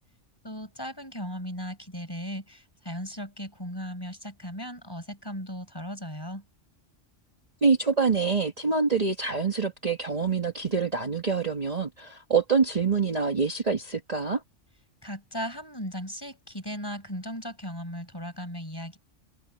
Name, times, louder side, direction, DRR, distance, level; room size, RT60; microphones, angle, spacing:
voice 1, 0.4-6.4 15.0-19.0, equal, 20° left, 5.3 m, -37 dB
voice 2, 7.6-14.4, right 5 dB, 30° right, 1.5 m, -25 dB
omnidirectional pair, 1.3 m